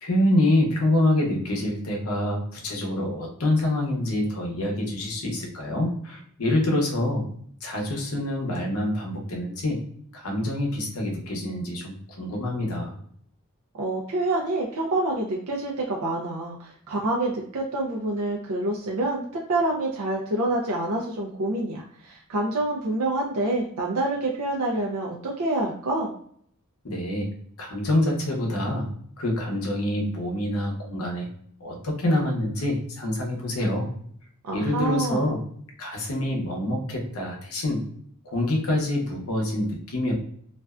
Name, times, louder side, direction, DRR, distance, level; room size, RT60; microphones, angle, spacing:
voice 1, 0.0-7.2 7.6-9.8 10.1-13.0 26.8-27.3 27.6-28.9 29.2-31.3 31.6-33.9 34.5-35.4 35.8-37.8 38.2-40.1, left 1 dB, 80° left, 0 dB, 0.8 m, -26 dB
voice 2, 13.8-19.2 19.5-26.1 34.4-35.3, right 2 dB, 85° right, -2 dB, 0.5 m, -27 dB
2.4 x 2.2 x 2.3 m, 0.63 s
head